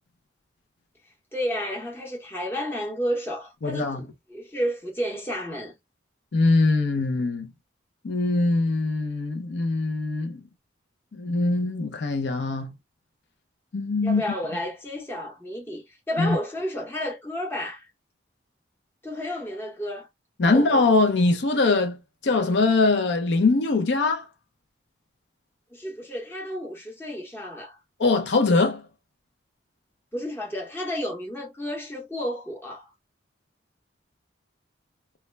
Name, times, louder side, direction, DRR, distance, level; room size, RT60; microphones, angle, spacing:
voice 1, 1.3-5.7 14.0-17.9 19.0-20.1 20.4-20.7 25.7-27.8 30.1-32.9, equal, 10° left, 0.8 m, -31 dB
voice 2, 3.6-4.0 6.3-7.5 8.0-10.4 11.1-12.7 13.7-14.2 16.2-16.4 20.4-24.3 28.0-28.9, left 3 dB, 70° left, 0.5 m, -22 dB
2.3 x 2.1 x 3.2 m
head